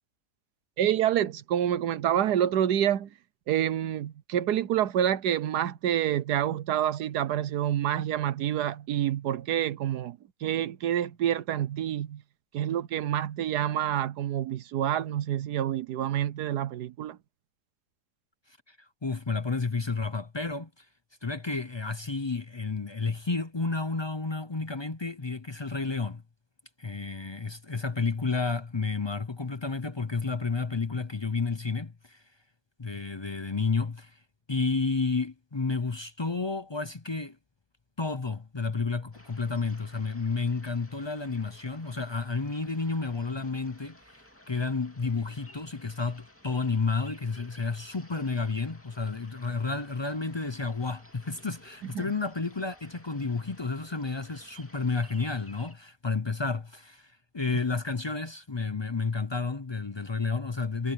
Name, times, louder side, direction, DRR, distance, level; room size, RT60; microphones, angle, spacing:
voice 1, 0.8-3.1 3.5-12.2 12.5-17.2 51.9-52.0, right 11 dB, 85° right, 1.4 m, -27 dB
voice 2, 19.0-20.8 21.2-26.2 26.8-32.2 32.8-34.2 34.5-37.4 38.0-44.0 44.5-60.9, left 4 dB, 45° left, 0.3 m, -31 dB
sound 1, 39.1-55.7, left 1 dB, 10° left, 2.3 m, -55 dB
omnidirectional pair, 1.7 m